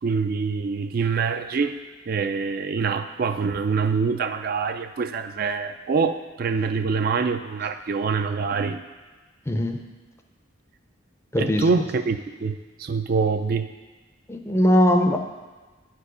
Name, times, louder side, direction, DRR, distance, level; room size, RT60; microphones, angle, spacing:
voice 1, 0.0-1.8 2.1-8.8 11.4-13.7, right 5 dB, 50° right, 8 dB, 0.3 m, -25 dB
voice 2, 9.5-9.8 11.3-11.6 14.3-15.2, equal, 15° left, 4 dB, 0.5 m, -20 dB
9.8 x 4.6 x 4.8 m, 1.3 s
head